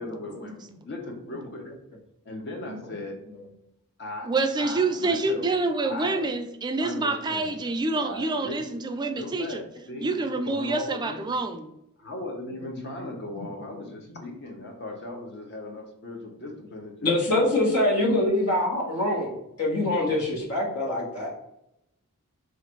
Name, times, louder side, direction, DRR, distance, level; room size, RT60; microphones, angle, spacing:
voice 1, 0.0-1.7 2.2-3.2 4.0-4.3 4.6-5.5 5.8-6.3 6.8-7.6 7.9-8.7 9.1-11.3 12.0-17.5, left 2 dB, 50° left, 2 dB, 0.9 m, -38 dB
voice 2, 4.2-9.6 10.0-11.7, right 3 dB, 20° right, 6 dB, 0.3 m, -27 dB
voice 3, 13.3-13.7 17.0-21.3, left 1 dB, 80° left, -3 dB, 1.3 m, -25 dB
3.2 x 2.5 x 4.4 m, 0.81 s
head